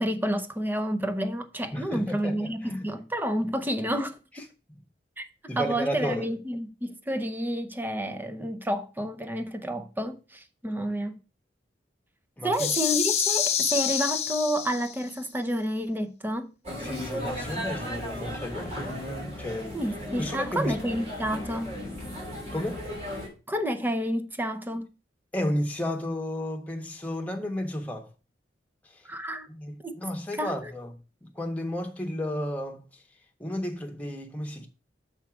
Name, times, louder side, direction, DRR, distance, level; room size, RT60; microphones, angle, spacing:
voice 1, 0.0-4.2 5.2-5.3 5.6-11.2 12.4-16.5 19.7-21.7 23.5-24.9 29.1-29.5 29.8-30.0 30.4-30.5, equal, 10° right, 0.7 m, -30 dB
voice 2, 1.7-2.9 5.5-6.3 12.4-12.7 16.8-18.9 19.4-19.8 20.2-20.8 22.5-22.9 25.3-28.1 28.9-29.0 29.5-31.0 31.2-32.9 33.4-34.7, left 1 dB, 10° left, 1.1 m, -32 dB
sound 1, 12.5-15.1, left 9 dB, 35° left, 0.9 m, -27 dB
sound 2, 16.6-23.3, equal, 35° right, 2.9 m, -35 dB
6.3 x 4.8 x 5.9 m
head